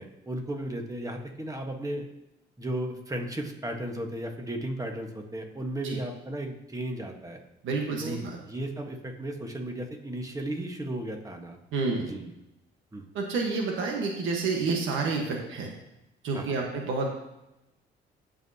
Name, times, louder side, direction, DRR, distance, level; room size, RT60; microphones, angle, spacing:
voice 1, 0.0-2.1 2.6-7.4 8.0-8.2 8.4-11.6 12.1-12.3 12.9-13.0 16.3-16.6, right 1 dB, 15° right, 3 dB, 1.4 m, -35 dB
voice 2, 7.6-8.4 11.7-12.1 13.1-15.7 16.2-17.1, right 4 dB, 80° right, 0 dB, 1.4 m, -29 dB
14.5 x 5.5 x 2.8 m, 0.90 s
cardioid pair, 90°, 20 cm